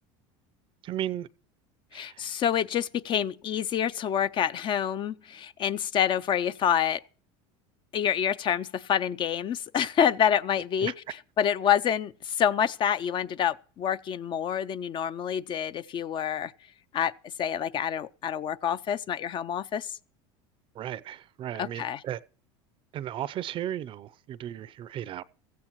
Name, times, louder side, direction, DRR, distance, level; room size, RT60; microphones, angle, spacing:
voice 1, 0.8-1.3 1.9-2.3 10.8-10.9 20.8-22.2 22.9-25.2, right 11 dB, 40° right, 0.5 m, -35 dB
voice 2, 1.9-7.0 7.9-10.9 11.4-16.5 16.9-17.1 17.4-20.0 21.6-22.0, left 9 dB, 35° left, 0.5 m, -27 dB
16.0 x 14.5 x 3.1 m
supercardioid pair, 125°, 14 cm